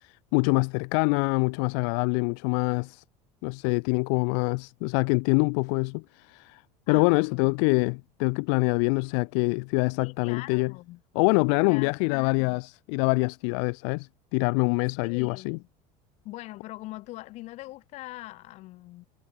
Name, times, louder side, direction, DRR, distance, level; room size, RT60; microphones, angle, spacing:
voice 1, 0.0-3.0 3.4-6.6 6.9-10.7 11.2-15.6, left 40 dB or more, 65° left, 1.7 m, -25 dB
voice 2, 6.9-7.5 10.0-11.0 11.7-12.6 15.0-15.7 16.2-19.0, left 18 dB, 45° left, 7.0 m, -42 dB
cardioid pair, 180°, 16 cm